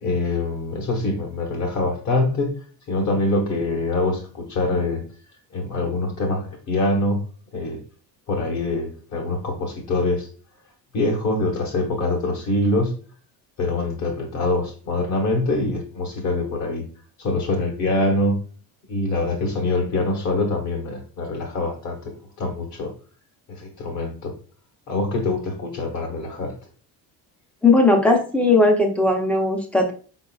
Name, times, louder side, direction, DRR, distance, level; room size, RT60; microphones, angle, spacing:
voice 1, 0.0-5.0 5.5-7.2 7.5-7.8 8.3-10.3 10.9-12.9 13.6-16.8 17.2-18.4 18.9-22.1 22.4-22.9 23.5-24.3 24.9-26.5, left 2 dB, 45° left, 1.0 m, -24 dB
voice 2, 27.6-29.9, left 2 dB, 5° left, 0.5 m, -17 dB
4.8 x 3.8 x 2.3 m
cardioid pair, 180°, 39 cm